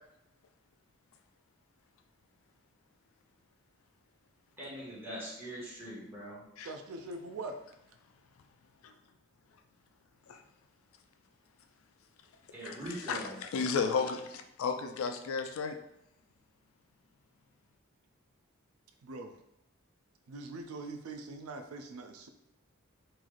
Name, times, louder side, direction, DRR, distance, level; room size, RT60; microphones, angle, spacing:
voice 1, 4.6-6.5 12.5-13.4, right 1 dB, 10° right, -8 dB, 1.3 m, -42 dB
voice 2, 6.6-7.6 19.0-19.4 20.3-22.3, right 2 dB, 90° right, 7 dB, 0.4 m, -42 dB
voice 3, 13.1-15.8, left 5 dB, 70° left, 6 dB, 0.4 m, -33 dB
3.2 x 2.5 x 3.8 m, 0.81 s
head